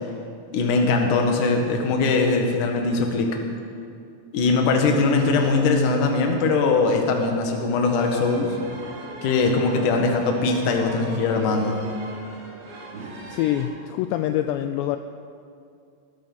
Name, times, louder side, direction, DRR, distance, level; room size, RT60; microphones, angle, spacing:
voice 1, 0.5-3.4 4.3-8.6 9.2-11.8, left 3 dB, 60° left, 2 dB, 2.5 m, -21 dB
sound 1, 8.0-13.6, right 2 dB, 55° right, 4.3 m, -39 dB
voice 2, 13.3-15.0, left 12 dB, 85° left, 9 dB, 2.5 m, -25 dB
19.5 x 11.5 x 5.5 m, 2.4 s
omnidirectional pair, 5.4 m